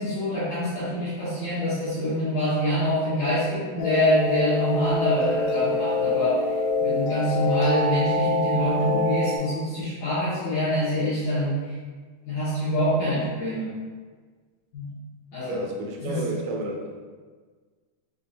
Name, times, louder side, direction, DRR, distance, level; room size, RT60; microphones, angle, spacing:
voice 1, 0.0-6.4 6.8-11.6 12.3-13.7 14.7-14.9 15.3-15.6 16.0-16.2, equal, 75° left, -12 dB, 1.9 m, -25 dB
sound 1, 3.8-9.4, left 2 dB, 90° left, 2.9 m, -25 dB
voice 2, 15.5-17.1, right 1 dB, 85° right, 0 dB, 2.5 m, -31 dB
6.8 x 2.4 x 2.5 m, 1.5 s
omnidirectional pair, 4.9 m